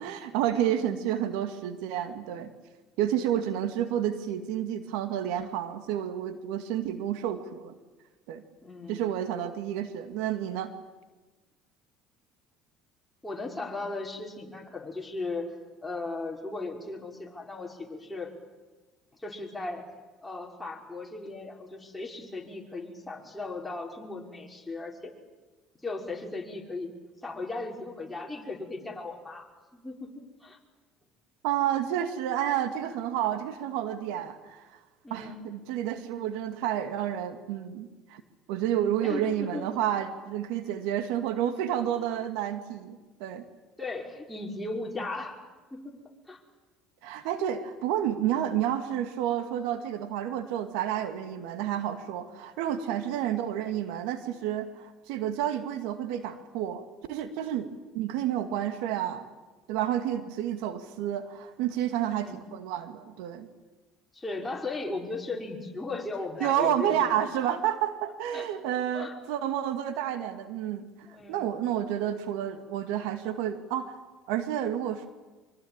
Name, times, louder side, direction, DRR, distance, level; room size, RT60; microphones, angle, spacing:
voice 1, 0.0-2.5 3.0-7.8 8.3-8.4 8.9-10.7 31.4-34.8 35.1-38.2 38.5-43.4 47.0-59.3 59.7-63.5 66.4-74.0 74.3-75.1, right 10 dB, 80° right, 9 dB, 2.2 m, -30 dB
voice 2, 8.6-9.0 13.2-15.5 15.8-18.3 19.2-19.9 20.2-25.1 25.8-26.9 27.2-30.6 35.0-35.5 39.0-39.6 43.8-45.4 45.7-46.0 46.3-46.4 53.0-53.2 62.1-62.4 64.1-67.3 68.3-68.5 68.9-69.2 71.0-71.5, left 3 dB, 10° left, 0 dB, 5.5 m, -37 dB
24.5 x 24.5 x 9.0 m, 1.2 s
supercardioid pair, 90°, 0 cm